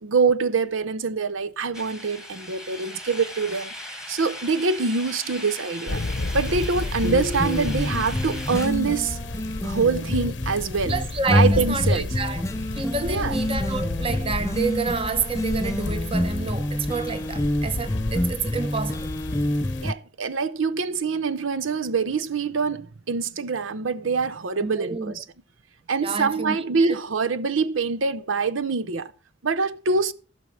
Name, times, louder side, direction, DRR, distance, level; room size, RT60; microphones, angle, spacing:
voice 1, 0.0-3.7 4.1-6.0 6.3-9.2 9.6-10.9 11.3-12.1 13.0-13.3 19.8-25.2 25.9-29.1 29.4-30.1, right 4 dB, 90° right, 0.7 m, -25 dB
sound 1, 1.7-8.7, left 1 dB, 5° right, 1.4 m, -38 dB
sound 2, 5.9-19.9, left 2 dB, 70° left, 0.8 m, -32 dB
sound 3, 7.0-19.9, left 1 dB, 15° left, 0.5 m, -27 dB
voice 2, 10.9-12.4 12.7-19.1 24.6-25.2 26.0-27.0, right 4 dB, 30° right, 0.9 m, -29 dB
15.5 x 6.2 x 6.3 m
head